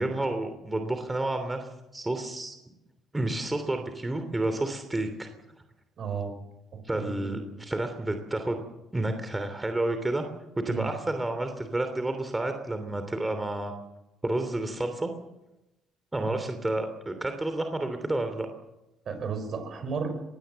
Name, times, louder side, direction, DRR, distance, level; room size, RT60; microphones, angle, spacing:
voice 1, 0.0-2.6 3.1-5.3 6.8-8.6 8.9-10.3 10.6-13.8 14.2-15.1 16.1-18.5, right 2 dB, 15° right, 7 dB, 3.1 m, -30 dB
voice 2, 6.0-6.4 6.7-7.4 10.7-10.9 16.2-16.4 19.1-20.1, right 5 dB, 55° right, 9 dB, 5.3 m, -34 dB
22.0 x 17.0 x 7.7 m, 0.95 s
supercardioid pair, 65°, 0 cm